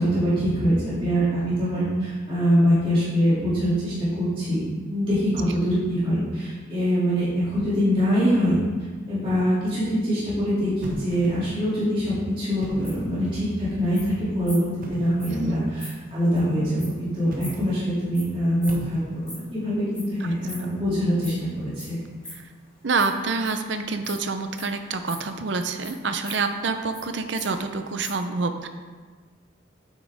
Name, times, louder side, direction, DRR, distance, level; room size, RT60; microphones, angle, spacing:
voice 1, 0.0-4.6 4.9-8.6 9.1-22.0, equal, 30° right, -11 dB, 2.5 m, -24 dB
sound 1, 10.8-11.6 12.5-13.2 14.8-15.3 17.2-17.9 18.7-19.4, equal, 45° right, 0.9 m, -37 dB
sound 2, 12.8-19.6 19.9-21.8 22.1-23.6 24.0-25.3 25.8-27.0 27.3-27.5 27.7-28.1, left 1 dB, 5° left, 2.2 m, -42 dB
voice 2, 22.8-28.7, right 4 dB, 65° right, 8 dB, 0.6 m, -27 dB
9.0 x 6.1 x 3.5 m, 1.4 s
head